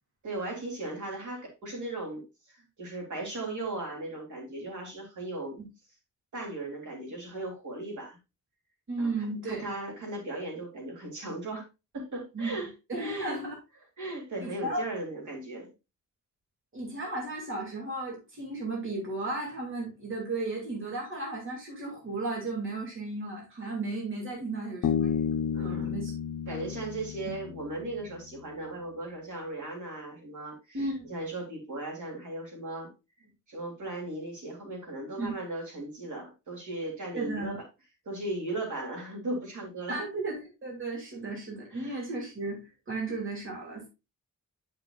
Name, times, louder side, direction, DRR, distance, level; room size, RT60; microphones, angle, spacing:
voice 1, 0.2-5.6 6.3-8.2 9.0-11.7 11.9-13.4 14.0-15.7 25.5-25.9 26.5-32.9 33.5-37.6 38.0-40.0 41.7-42.1, right 2 dB, 70° right, -1 dB, 3.3 m, -37 dB
voice 2, 8.9-9.7 12.3-12.5 12.9-13.6 14.4-14.8 16.7-25.1 25.6-26.1 26.5-26.6 30.7-31.1 35.2-35.4 37.1-37.6 39.9-40.4 40.6-43.9, right 2 dB, 40° right, -2 dB, 2.7 m, -34 dB
Bass guitar, 24.8-28.4, left 7 dB, 75° left, 0.8 m, -32 dB
10.0 x 6.1 x 2.4 m, 0.27 s
wide cardioid pair, 180°, 31 cm